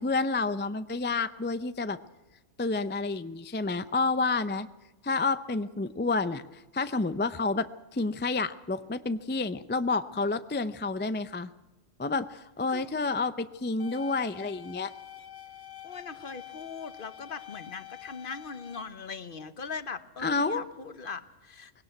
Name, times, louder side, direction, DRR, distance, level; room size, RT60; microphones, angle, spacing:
voice 1, 0.0-2.0 2.6-4.7 5.0-11.5 12.0-14.9 20.2-20.7, left 3 dB, 20° left, 12 dB, 0.3 m, -29 dB
sound 1, 13.8-18.8, left 11 dB, 75° left, 1.3 m, -47 dB
voice 2, 15.8-21.7, left 5 dB, 45° left, 13 dB, 1.0 m, -40 dB
20.0 x 17.5 x 7.8 m, 1.1 s
omnidirectional pair, 1.3 m